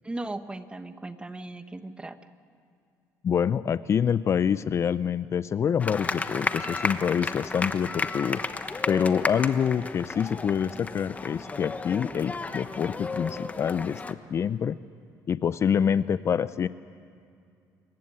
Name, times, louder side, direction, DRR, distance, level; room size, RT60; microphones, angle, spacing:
voice 1, 0.0-2.2, right 2 dB, 15° right, 10 dB, 1.1 m, -37 dB
voice 2, 3.2-8.4 8.9-14.8 15.3-16.7, left 7 dB, 40° left, 16 dB, 0.5 m, -26 dB
sound 1, 5.8-14.1, left 3 dB, 20° left, 1.1 m, -33 dB
26.5 x 15.5 x 9.8 m, 2.4 s
cardioid pair, 115°, 7 cm